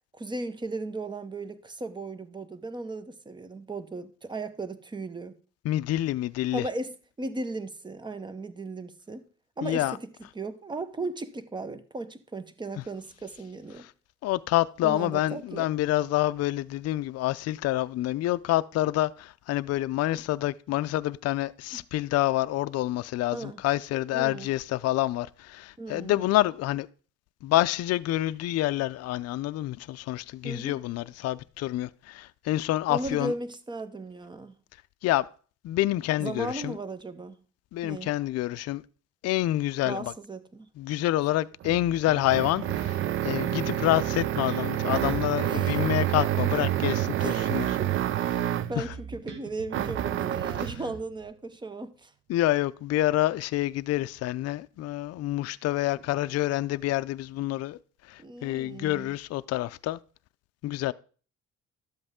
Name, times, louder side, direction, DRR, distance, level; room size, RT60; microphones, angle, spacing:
voice 1, 0.1-5.4 6.5-9.3 9.6-13.9 14.8-15.7 21.7-21.9 23.3-23.6 24.1-24.5 25.8-26.2 30.4-30.8 32.9-34.6 36.2-37.4 37.8-38.1 39.8-40.7 45.5-45.8 47.2-47.5 47.8-47.9 48.7-52.1 58.2-59.1, right 2 dB, 15° right, 0.7 m, -36 dB
voice 2, 5.6-6.6 9.6-10.0 14.2-26.9 27.4-33.3 35.0-35.2 35.6-36.8 37.7-38.8 39.2-40.1 40.8-47.8 48.8-48.9 52.3-57.8 58.1-60.0 60.6-60.9, left 15 dB, 60° left, 0.4 m, -27 dB
sound 1, 41.6-48.8 49.7-50.8, right 12 dB, 45° right, 0.4 m, -28 dB
Bass guitar, 41.6-43.1 43.4-47.9 48.2-51.2, right 4 dB, 90° right, 1.8 m, -42 dB
12.0 x 7.8 x 3.6 m
cardioid pair, 130°, 29 cm